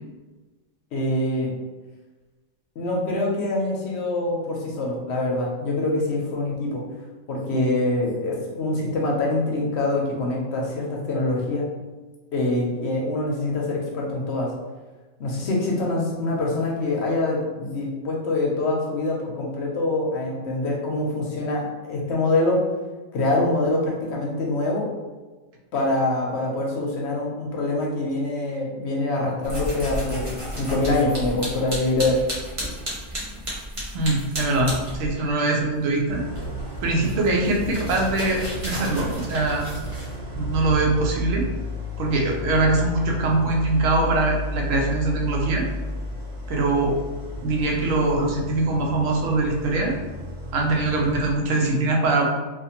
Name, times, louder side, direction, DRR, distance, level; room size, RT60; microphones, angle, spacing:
voice 1, 0.9-1.5 2.8-6.8 7.3-11.6 12.3-14.5 15.2-22.6 23.1-24.9 25.7-32.2, left 2 dB, 65° left, -2 dB, 0.8 m, -25 dB
sound 1, 29.4-35.3 35.6-40.2, equal, 35° right, 0.6 m, -33 dB
voice 2, 33.9-36.2 36.8-39.6 40.3-41.5 42.0-45.6 46.5-47.0 47.4-49.9 50.5-52.3, right 2 dB, 85° right, 0 dB, 1.0 m, -22 dB
Idling, 36.1-51.3, equal, 60° right, 0.9 m, -32 dB
2.5 x 2.5 x 2.8 m, 1.2 s
omnidirectional pair, 1.3 m